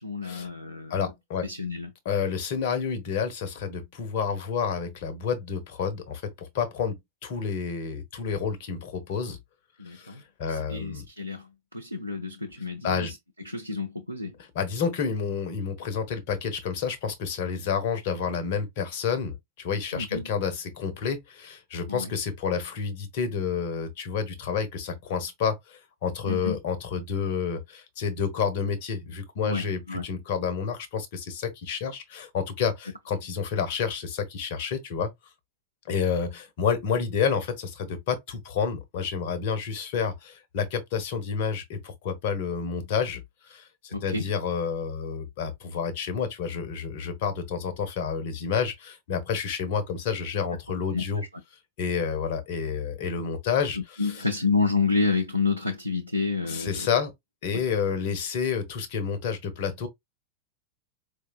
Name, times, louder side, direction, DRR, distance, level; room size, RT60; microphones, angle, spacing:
voice 1, 0.0-1.1 1.4-1.9 9.8-10.2 10.5-11.5 11.7-13.2 13.5-14.3 19.9-20.3 21.9-22.1 26.3-26.6 29.4-30.0 43.9-44.3 50.9-51.0 54.0-56.7 57.5-57.6, left 3 dB, 90° left, 0.5 m, -29 dB
voice 2, 0.9-1.5 2.0-7.0 7.2-9.4 9.9-11.1 12.8-13.1 14.4-35.1 35.8-51.2 51.8-54.2 56.5-57.1 57.4-59.9, left 6 dB, 50° left, 1.0 m, -29 dB
4.5 x 2.6 x 2.3 m
figure-of-eight pair, 90°, 0 cm